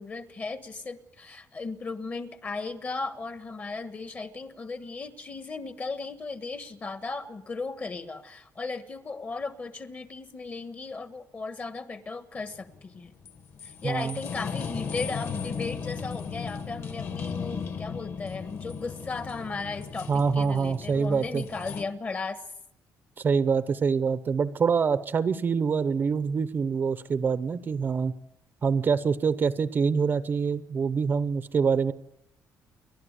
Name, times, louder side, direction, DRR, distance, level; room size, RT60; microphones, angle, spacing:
voice 1, 0.0-13.1 13.6-22.4, left 3 dB, 25° left, 11 dB, 1.3 m, -36 dB
sound 1, 12.4-21.8, left 6 dB, 45° left, 1.9 m, -36 dB
voice 2, 13.8-14.2 20.1-21.4 23.2-28.1 28.6-31.9, right 5 dB, 30° right, 13 dB, 0.8 m, -25 dB
29.5 x 12.0 x 8.1 m, 0.79 s
cardioid pair, 165°, 6 cm